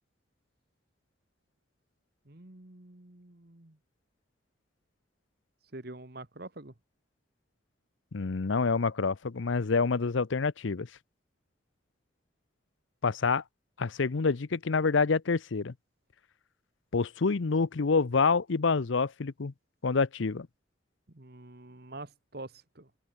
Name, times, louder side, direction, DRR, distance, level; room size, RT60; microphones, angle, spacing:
voice 1, 2.3-3.8 5.7-6.7 21.1-22.9, right 2 dB, 50° right, 1.6 m, -46 dB
voice 2, 8.1-10.9 13.0-13.4 13.8-15.7 16.9-19.5 19.8-20.5, left 4 dB, 70° left, 0.6 m, -27 dB
head